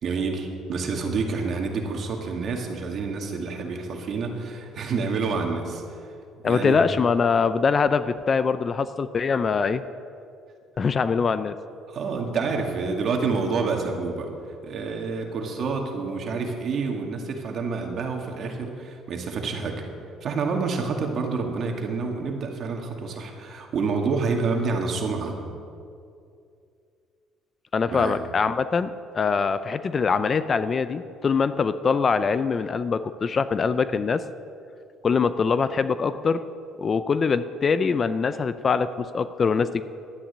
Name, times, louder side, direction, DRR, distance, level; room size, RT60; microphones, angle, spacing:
voice 1, 0.0-6.1 6.4-6.8 11.9-14.3 14.6-19.8 20.2-25.4 27.9-28.2, right 4 dB, 50° right, 2 dB, 2.2 m, -28 dB
voice 2, 6.4-9.8 10.8-11.5 27.7-34.2 35.0-36.4 36.8-39.8, left 5 dB, 30° left, 13 dB, 0.5 m, -23 dB
12.0 x 9.9 x 8.6 m, 2.5 s
cardioid pair, 125°, 0 cm